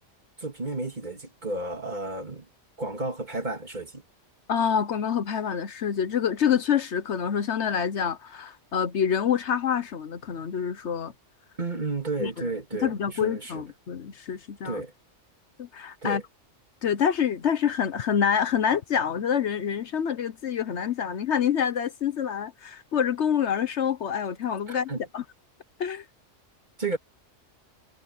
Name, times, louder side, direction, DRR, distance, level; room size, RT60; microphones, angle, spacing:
voice 1, 0.4-2.5 2.8-4.0 11.6-13.6 14.6-14.9 16.0-16.2 24.7-25.0 26.8-27.0, right 3 dB, 35° right, 2.5 m, -32 dB
voice 2, 4.5-11.1 12.2-12.5 12.8-14.8 15.6-16.2 16.8-25.2 25.8-26.0, left 8 dB, 65° left, 1.1 m, -27 dB
omnidirectional pair, 1.3 m